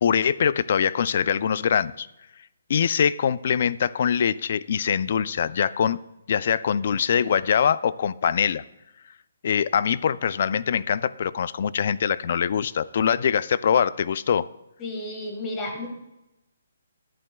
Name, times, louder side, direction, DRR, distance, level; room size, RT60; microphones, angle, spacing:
voice 1, 0.0-2.1 2.7-6.0 6.3-8.6 9.4-14.5, left 7 dB, 40° left, 18 dB, 0.3 m, -23 dB
voice 2, 14.8-15.9, left 1 dB, 15° left, 2 dB, 1.7 m, -32 dB
17.0 x 11.0 x 2.3 m, 0.91 s
hypercardioid pair, 175°, 0 cm